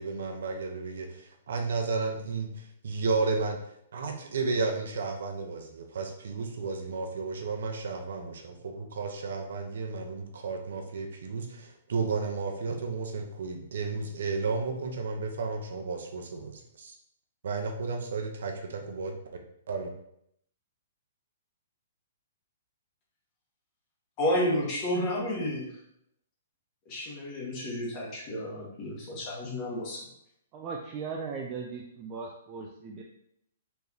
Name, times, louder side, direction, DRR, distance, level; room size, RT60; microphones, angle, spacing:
voice 1, 0.0-3.6 3.9-16.9 17.4-19.1 19.7-19.9, right 4 dB, 70° right, 3 dB, 0.7 m, -33 dB
voice 2, 24.2-25.7 26.9-30.0, left 1 dB, 25° left, -3 dB, 1.2 m, -31 dB
voice 3, 30.5-33.0, right 5 dB, 25° right, 0 dB, 0.4 m, -38 dB
4.4 x 3.3 x 2.8 m, 0.74 s
hypercardioid pair, 165°, 0 cm